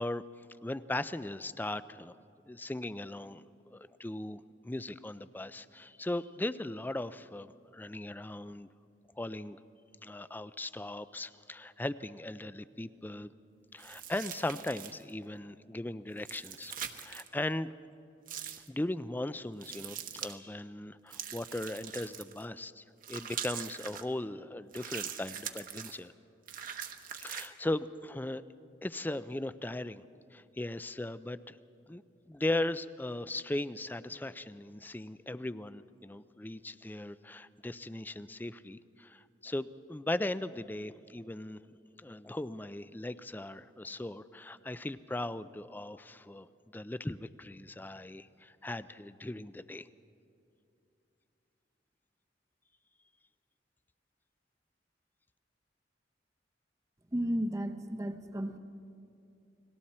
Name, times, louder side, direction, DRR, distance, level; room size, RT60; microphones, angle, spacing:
voice 1, 0.0-2.2 2.5-8.7 9.2-9.6 10.0-13.3 13.7-16.7 17.0-17.7 18.7-26.1 27.2-28.4 28.8-30.0 30.3-31.6 31.9-41.6 42.0-49.9, left 1 dB, 10° left, 15 dB, 0.4 m, -38 dB
sound 1, 13.8-15.1 16.2-17.3 18.3-18.7 19.6-20.4 21.1-22.5 23.0-24.0 24.7-26.0 26.5-27.5, right 9 dB, 50° right, 1.1 m, -42 dB
voice 2, 57.1-58.6, equal, 20° right, 5 dB, 0.8 m, -33 dB
29.5 x 20.5 x 4.3 m, 2.7 s
head